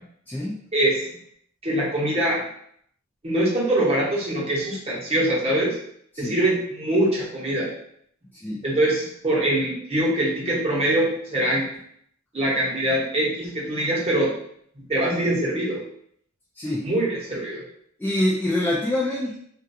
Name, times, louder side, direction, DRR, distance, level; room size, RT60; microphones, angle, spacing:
voice 1, 0.3-0.6 6.1-6.4 8.3-8.6 16.6-16.9 18.0-19.3, left 1 dB, 10° left, -6 dB, 0.3 m, -25 dB
voice 2, 1.6-2.4 3.2-5.8 6.2-7.7 8.6-11.6 12.3-14.3 14.9-15.8 16.8-17.6, right 1 dB, 30° right, -5 dB, 0.8 m, -23 dB
2.4 x 2.3 x 2.7 m, 0.65 s
head